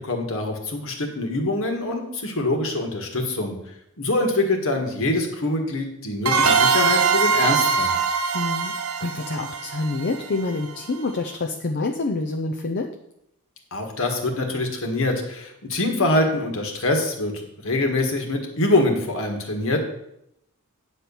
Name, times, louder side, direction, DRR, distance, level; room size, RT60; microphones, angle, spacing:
voice 1, 0.0-3.6 4.0-8.0 13.7-19.8, left 2 dB, 65° left, 3 dB, 1.7 m, -24 dB
sound 1, 6.2-10.8, right 5 dB, 75° right, 1.0 m, -22 dB
voice 2, 8.3-12.9, left 3 dB, 50° left, 4 dB, 0.6 m, -27 dB
9.4 x 4.5 x 7.0 m, 0.79 s
head